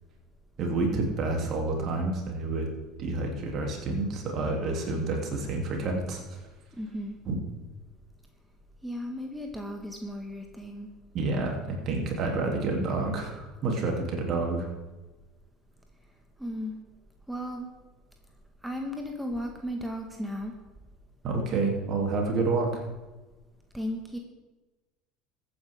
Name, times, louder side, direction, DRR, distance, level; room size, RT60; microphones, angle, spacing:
voice 1, 0.6-2.7 3.0-6.4 7.3-7.4 11.1-14.7 21.2-22.8, right 3 dB, 45° right, 1 dB, 3.1 m, -29 dB
voice 2, 6.8-7.2 8.8-10.9 16.4-16.7 17.3-17.7 18.6-20.5 23.7-24.2, equal, 5° right, 2 dB, 1.7 m, -35 dB
22.5 x 9.3 x 3.7 m, 1.2 s
figure-of-eight pair, 65°, 0 cm